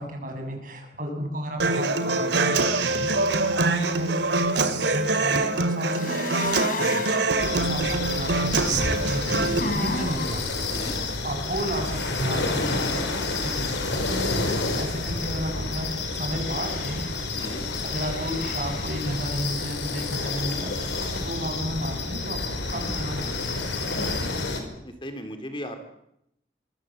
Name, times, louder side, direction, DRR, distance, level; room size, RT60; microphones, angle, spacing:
voice 1, 0.0-10.4 11.2-17.0 17.8-23.8 24.2-24.3, equal, 45° right, 3 dB, 7.9 m, -33 dB
Human voice / Acoustic guitar, 1.6-9.6, right 3 dB, 75° right, 2.5 m, -24 dB
sound 1, 5.9-7.3 9.1-10.5 16.4-17.1 17.9-18.9, left 2 dB, 45° left, 4.7 m, -33 dB
sound 2, 7.4-24.6, left 3 dB, 85° left, 5.4 m, -29 dB
voice 2, 10.7-11.0 17.4-17.6 24.8-25.8, equal, 25° left, 7 dB, 2.8 m, -36 dB
25.0 x 24.5 x 7.7 m, 0.78 s
head